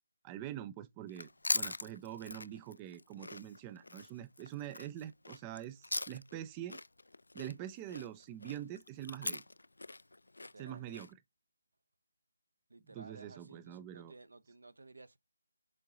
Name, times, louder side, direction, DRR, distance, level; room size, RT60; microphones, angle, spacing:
voice 1, 0.2-6.8 7.3-9.4 10.6-11.1 12.9-14.1, right 11 dB, 15° right, 0.4 m, -45 dB
Chewing mastication, 1.1-6.4 6.7-11.1, left 2 dB, 80° left, 0.3 m, -41 dB
voice 2, 10.4-10.9 12.7-15.2, right 3 dB, 75° right, 0.9 m, -55 dB
7.4 x 3.7 x 3.7 m
figure-of-eight pair, 160°, 0 cm